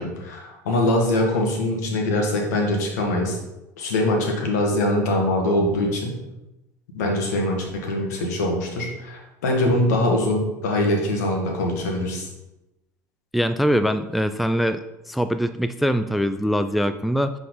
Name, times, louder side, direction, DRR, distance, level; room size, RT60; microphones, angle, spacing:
voice 1, 0.0-3.4 3.8-6.2 6.9-12.3, left 1 dB, 65° left, 1 dB, 1.5 m, -23 dB
voice 2, 13.3-17.3, equal, ahead, 11 dB, 0.3 m, -23 dB
7.3 x 4.0 x 3.9 m, 0.97 s
figure-of-eight pair, 70°, 9 cm